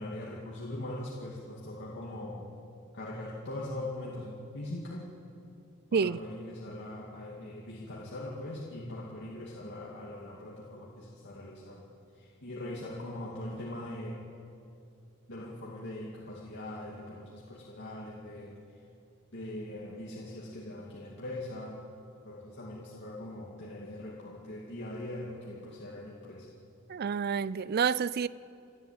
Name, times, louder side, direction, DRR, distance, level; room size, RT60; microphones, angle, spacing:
voice 1, 0.0-2.5 2.9-5.1 5.9-11.9 12.2-14.2 15.3-18.6 19.3-21.9 22.2-26.5, left 1 dB, 55° left, -4 dB, 2.4 m, -41 dB
voice 2, 26.9-28.3, right 6 dB, 50° right, 19 dB, 0.4 m, -28 dB
29.0 x 12.0 x 8.7 m, 2.6 s
head